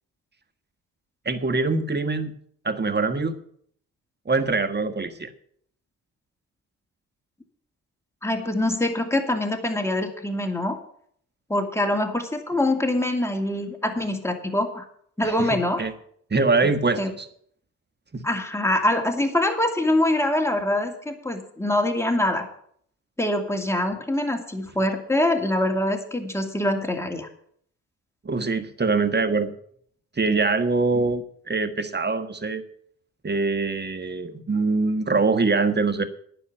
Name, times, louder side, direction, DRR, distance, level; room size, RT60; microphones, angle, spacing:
voice 1, 1.2-2.4 2.6-3.4 4.2-5.3 15.2-15.9 16.3-17.3 18.1-18.3 28.2-29.5 30.2-32.6 33.2-36.0, right 3 dB, 25° right, 10 dB, 1.5 m, -24 dB
voice 2, 8.2-10.8 11.5-14.9 15.2-15.8 17.0-17.1 18.2-22.5 23.2-27.3, left 1 dB, 5° left, 4 dB, 2.5 m, -24 dB
9.8 x 7.1 x 8.8 m, 0.63 s
supercardioid pair, 45°, 38 cm